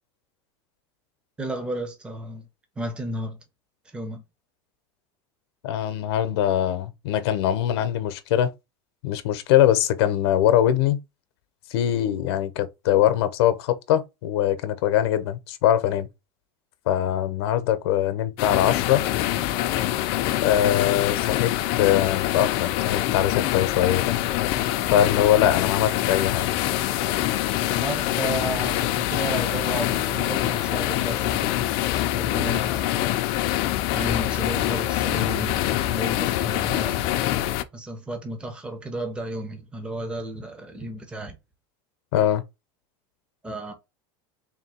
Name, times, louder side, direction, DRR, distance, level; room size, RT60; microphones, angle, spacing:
voice 1, 1.4-2.5 2.8-3.4 3.9-4.2 27.8-31.5 32.1-33.0 33.9-35.6 35.9-37.1 37.7-41.3 43.4-43.7, right 1 dB, 5° right, 0.6 m, -33 dB
voice 2, 5.6-8.5 9.0-11.0 11.7-16.1 16.9-19.0 20.4-21.5 21.8-24.1 24.9-26.5 32.2-32.5 42.1-42.4, left 11 dB, 75° left, 0.7 m, -22 dB
sound 1, 18.4-37.6, left 14 dB, 40° left, 0.4 m, -25 dB
3.7 x 2.7 x 4.2 m
supercardioid pair, 170°, 13 cm